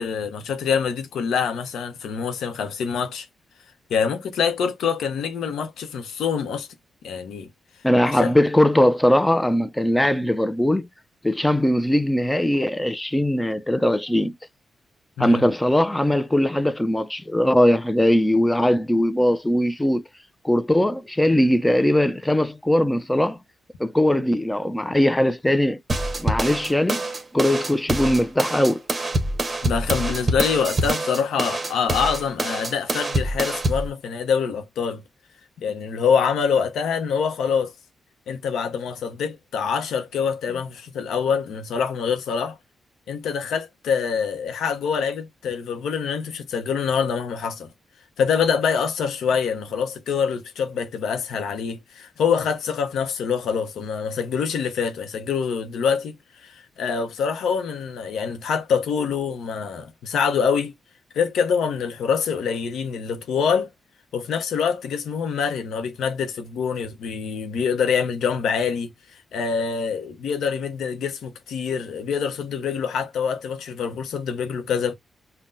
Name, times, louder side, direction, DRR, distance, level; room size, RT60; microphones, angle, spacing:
voice 1, 0.0-3.3 3.9-6.7 7.0-7.5 8.1-8.3 15.2-15.4 29.6-35.0 35.6-37.7 38.3-42.6 43.1-47.7 48.2-56.2 56.4-60.7 61.1-63.7 64.1-68.9 69.3-75.0, left 6 dB, 90° left, 0.7 m, -25 dB
voice 2, 7.8-10.9 11.2-14.4 15.2-20.0 20.4-23.4 23.8-25.8 26.2-27.0 27.3-28.8, left 1 dB, 10° left, 0.5 m, -20 dB
sound 1, 25.9-33.9, right 1 dB, 30° right, 0.9 m, -25 dB
5.5 x 2.2 x 2.6 m
cardioid pair, 80°, 0 cm